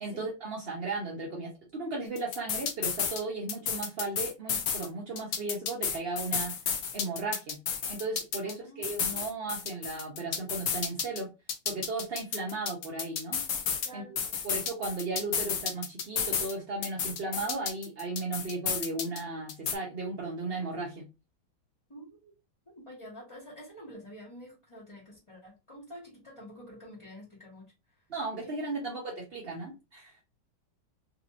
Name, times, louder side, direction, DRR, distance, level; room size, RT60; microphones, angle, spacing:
voice 1, 0.0-6.5 6.9-7.6 7.9-11.3 11.7-13.4 13.9-14.2 14.4-21.0 28.1-30.2, right 3 dB, 70° right, 0.5 m, -36 dB
sound 1, 2.2-3.2 3.5-4.9 5.2-8.5 8.8-11.2 11.5-13.9 14.2-16.5 16.8-19.2 19.5-19.7, left 7 dB, 70° left, 0.8 m, -32 dB
voice 2, 8.6-9.3 13.8-14.2 21.9-22.3 22.7-27.6 28.4-29.0, equal, 20° left, 1.0 m, -48 dB
3.9 x 2.6 x 2.8 m
omnidirectional pair, 2.2 m